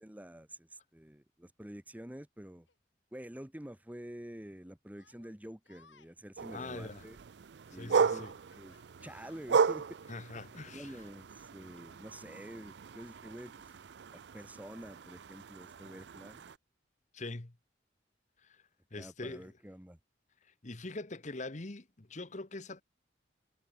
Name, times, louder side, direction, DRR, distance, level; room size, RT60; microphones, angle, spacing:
voice 1, 0.0-2.7 3.1-7.2 7.7-8.2 8.5-10.0 10.7-13.7 14.1-16.5 19.0-20.0, equal, 10° right, 1.0 m, -48 dB
Yell, 2.7-2.8 3.7-3.8 4.9-6.1 8.0-9.5, left 5 dB, 85° left, 2.6 m, -62 dB
sound 1, 6.4-16.6, right 5 dB, 65° right, 0.5 m, -35 dB
voice 2, 6.5-7.1 7.7-8.3 10.1-11.0 17.1-17.5 18.4-18.6 18.9-19.5 20.6-22.8, left 2 dB, 40° left, 1.2 m, -43 dB
head